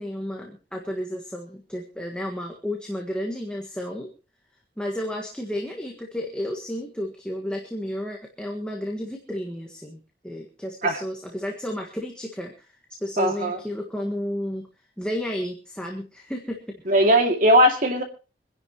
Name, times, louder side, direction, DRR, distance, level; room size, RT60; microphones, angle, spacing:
voice 1, 0.0-4.1 4.8-12.7 13.0-14.7 15.0-16.8, left 1 dB, 5° left, 1 dB, 1.6 m, -32 dB
voice 2, 13.2-13.6 16.9-18.0, equal, 45° right, 3 dB, 2.4 m, -19 dB
25.5 x 11.0 x 3.0 m, 0.32 s
head